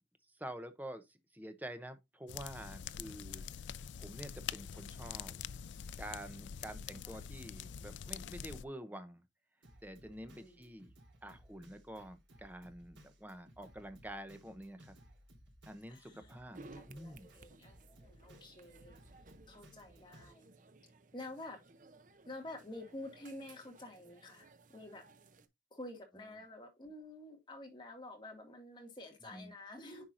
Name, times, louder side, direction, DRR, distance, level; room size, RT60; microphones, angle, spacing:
voice 1, 0.4-5.4 6.0-9.2 9.8-10.9 11.2-14.9 15.7-16.6 16.9-17.3 29.3-29.5, right 1 dB, 10° right, 0.8 m, -48 dB
sound 1, 2.3-8.6, left 8 dB, 75° left, 0.4 m, -45 dB
Drum kit, 9.6-20.3, equal, 80° right, 3.6 m, -61 dB
voice 2, 10.3-10.8 15.9-19.0 19.5-20.5 21.1-21.6 22.3-25.0 25.7-30.0, left 2 dB, 25° left, 2.1 m, -49 dB
sound 2, 16.5-25.5, right 3 dB, 45° right, 0.7 m, -59 dB
9.8 x 4.6 x 2.6 m
head